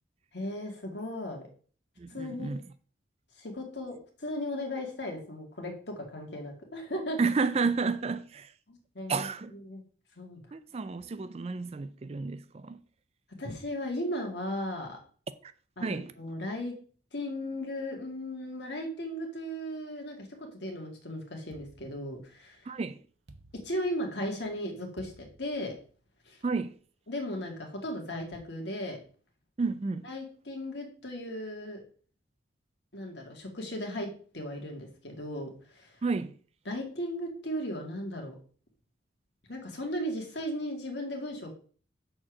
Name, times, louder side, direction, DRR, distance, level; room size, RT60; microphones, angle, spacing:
voice 1, 0.3-1.4 2.1-2.5 3.4-7.2 8.7-9.3 9.7-9.8 10.2-10.4 13.4-15.0 15.8-16.7 17.1-22.6 23.6-25.7 26.3-26.4 27.1-29.0 30.0-31.8 32.9-34.1 34.3-35.5 35.8-36.0 36.7-38.3 39.5-41.5, left 1 dB, 65° left, 2.0 m, -36 dB
voice 2, 2.0-2.6 7.2-8.5 9.1-9.5 10.5-12.8 15.4-15.5 15.8-16.1 22.7-23.0 26.4-26.8 29.6-30.1 36.0-36.4, right 4 dB, 30° right, 0.4 m, -31 dB
sound 1, 21.5-22.6 23.3-24.3 25.0-26.1, right 2 dB, 65° right, 0.9 m, -56 dB
6.5 x 4.4 x 6.2 m
head